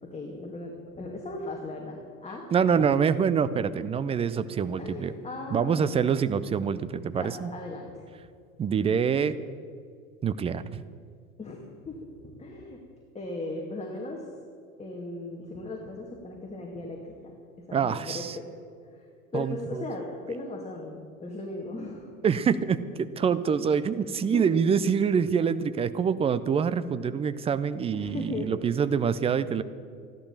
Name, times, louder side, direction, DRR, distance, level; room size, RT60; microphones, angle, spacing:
voice 1, 0.0-2.7 4.8-6.1 7.1-8.0 11.4-12.0 12.2-12.8 13.1-14.2 14.8-17.3 17.7-18.5 18.9-19.1 19.3-22.1 24.2-24.6 27.9-28.8, left 2 dB, 15° left, -1 dB, 2.2 m, -38 dB
voice 2, 2.5-5.1 5.5-7.5 8.6-9.3 10.2-10.8 17.7-18.4 19.3-19.8 22.2-29.6, right 7 dB, 15° right, 14 dB, 0.4 m, -26 dB
14.0 x 11.5 x 7.2 m, 2.2 s
hypercardioid pair, 90°, 42 cm